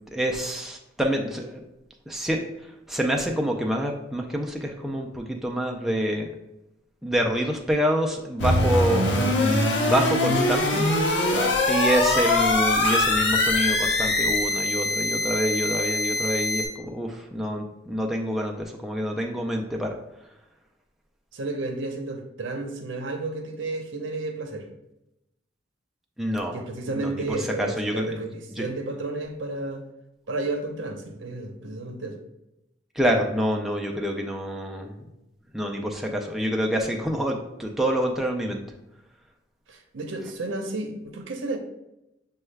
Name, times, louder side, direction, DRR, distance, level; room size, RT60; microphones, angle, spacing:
voice 1, 0.1-1.6 2.1-6.3 7.0-10.8 11.7-20.0 26.2-26.6 26.9-28.2 28.6-28.7 33.0-34.9 35.5-38.6, equal, ahead, 1 dB, 0.3 m, -27 dB
sound 1, 8.4-16.7, left 2 dB, 65° left, 0.8 m, -23 dB
voice 2, 21.3-24.7 26.5-29.8 30.3-32.2 39.7-41.6, right 2 dB, 80° right, 4 dB, 0.7 m, -32 dB
6.3 x 2.3 x 3.2 m, 0.89 s
head